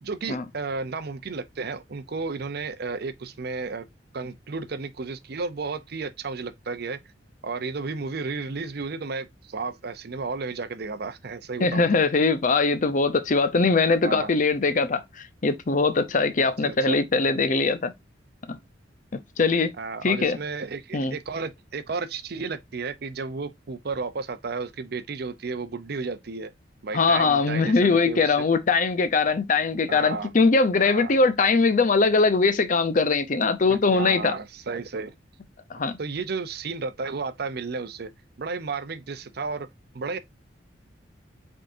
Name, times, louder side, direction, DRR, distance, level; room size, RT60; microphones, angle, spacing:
voice 1, 0.0-3.9 4.1-7.0 7.4-11.8 14.0-14.3 16.6-17.0 19.8-26.5 26.8-28.5 29.9-30.3 30.8-31.1 33.7-35.1 36.0-38.1 38.4-39.7 39.9-40.2, right 4 dB, 60° right, 0.6 m, -33 dB
voice 2, 11.6-17.9 18.5-18.6 19.4-19.7 20.0-20.4 20.9-21.2 26.9-34.4 35.7-36.0, left 4 dB, 45° left, 0.6 m, -21 dB
5.2 x 3.6 x 2.6 m
head